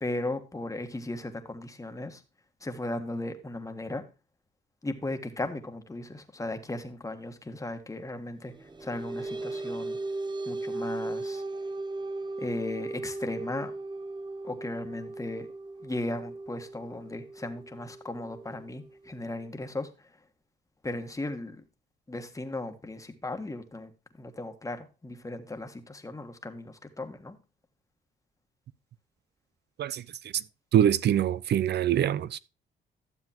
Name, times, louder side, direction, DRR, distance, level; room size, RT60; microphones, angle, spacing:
voice 1, 0.0-2.2 2.6-4.0 4.8-10.0 10.4-11.4 12.4-13.7 14.4-15.5 15.8-20.1 20.8-21.6 22.1-23.9 24.2-27.4, left 2 dB, 15° left, 1.5 m, -36 dB
sound 1, 8.5-19.5, right 2 dB, 20° right, 0.8 m, -37 dB
voice 2, 30.7-32.4, right 10 dB, 60° right, 0.6 m, -24 dB
12.5 x 7.3 x 2.9 m
cardioid pair, 90°, 20 cm